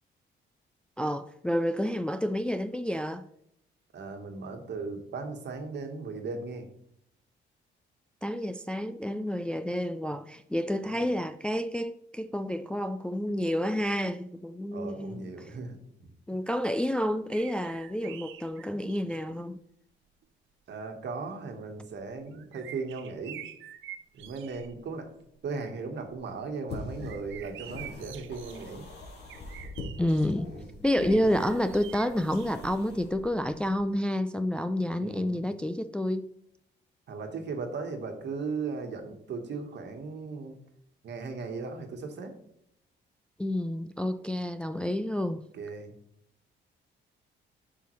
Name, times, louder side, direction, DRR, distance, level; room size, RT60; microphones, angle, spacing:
voice 1, 1.0-3.2 8.2-15.3 16.3-19.6 30.0-30.5 30.8-36.3 43.4-45.5, left 1 dB, 5° left, 0.3 m, -29 dB
voice 2, 3.9-6.7 10.9-11.1 14.7-16.1 20.7-23.4 24.1-25.1 25.4-28.9 30.5-30.7 35.0-35.4 37.1-40.6 41.0-42.3 45.5-45.9, right 4 dB, 60° right, 1.4 m, -37 dB
sound 1, 17.3-19.4 20.2-20.3 21.9-24.8 25.2-25.6 26.0-30.3 31.0-33.1 33.4-33.5, right 10 dB, 80° right, 0.6 m, -47 dB
sound 2, 26.7-33.9, left 2 dB, 55° left, 2.4 m, -43 dB
8.3 x 5.6 x 3.1 m
cardioid pair, 90°, 20 cm